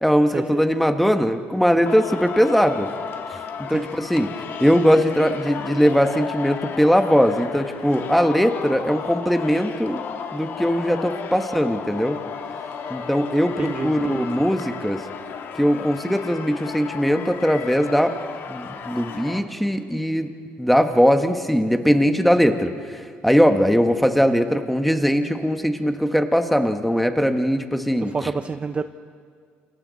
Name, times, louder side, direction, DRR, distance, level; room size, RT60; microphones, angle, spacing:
voice 1, 0.0-2.9 3.3-3.4 3.7-4.3 4.6-10.0 10.3-12.2 12.9-15.0 15.6-18.1 18.5-20.3 20.6-28.3, equal, ahead, 6 dB, 1.4 m, -20 dB
Singing, 1.9-19.4, left 6 dB, 60° left, 1.9 m, -34 dB
voice 2, 13.6-14.3 28.1-28.8, right 4 dB, 25° right, 9 dB, 0.6 m, -28 dB
28.5 x 28.5 x 4.2 m, 2.1 s
cardioid pair, 100°, 4 cm